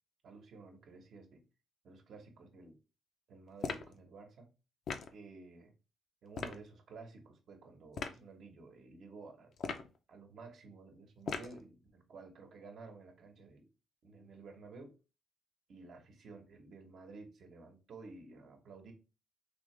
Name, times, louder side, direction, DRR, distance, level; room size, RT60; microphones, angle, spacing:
voice 1, 0.2-1.4 1.8-2.8 3.3-4.5 5.1-5.7 6.2-9.8 10.1-13.7 14.0-15.0 15.7-18.9, right 3 dB, 65° right, 1.1 m, -53 dB
sound 1, 3.6-3.9 4.9-5.1 6.3-6.6 7.9-8.2 9.6-10.0 11.3-11.6, left 5 dB, 60° left, 0.5 m, -39 dB
3.8 x 2.8 x 3.2 m
cardioid pair, 90°, 0 cm